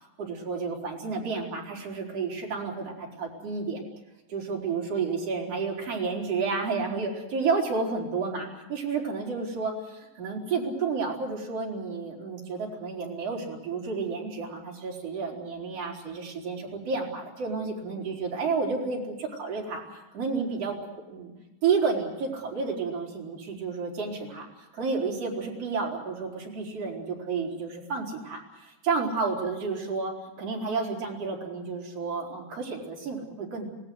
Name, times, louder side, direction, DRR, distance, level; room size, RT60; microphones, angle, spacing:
voice 1, 0.2-3.8 4.3-20.8 21.1-21.3 21.6-30.1 30.4-33.7, right 4 dB, 35° right, -2 dB, 5.3 m, -31 dB
26.5 x 17.5 x 7.9 m, 1.1 s
omnidirectional pair, 4.9 m